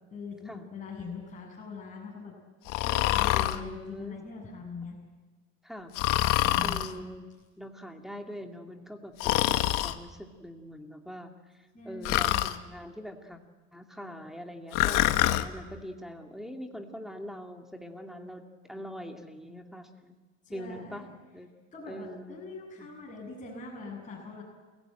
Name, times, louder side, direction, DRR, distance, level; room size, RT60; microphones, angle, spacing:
voice 1, 0.1-2.3 2.8-5.0 6.4-6.8 11.7-12.5 20.4-21.1 21.7-24.4, left 4 dB, 20° left, -3 dB, 7.3 m, -42 dB
Breathing, 2.7-3.6 5.9-6.9 9.2-9.9 12.0-12.6 14.7-15.5, left 15 dB, 60° left, 1.4 m, -25 dB
voice 2, 3.3-4.2 5.6-5.9 6.6-7.3 7.6-13.4 13.7-20.2 20.5-21.0 21.3-21.5 21.9-22.4 22.8-22.9, equal, ahead, 3 dB, 2.4 m, -43 dB
29.0 x 16.5 x 9.0 m, 1.3 s
supercardioid pair, 105°, 35 cm